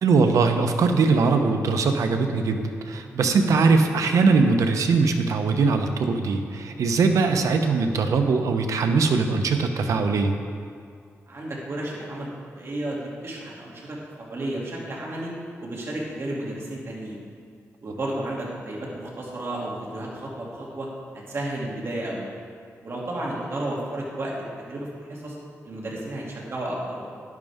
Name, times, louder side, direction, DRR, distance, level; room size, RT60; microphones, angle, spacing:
voice 1, 0.0-10.4, right 4 dB, 80° right, 6 dB, 0.8 m, -21 dB
voice 2, 11.3-15.3 15.6-17.2 17.8-20.9 21.3-22.2 22.8-25.4 25.6-27.1, right 1 dB, 50° right, -4 dB, 2.6 m, -32 dB
10.5 x 10.5 x 3.6 m, 2.3 s
cardioid pair, 80°, 5 cm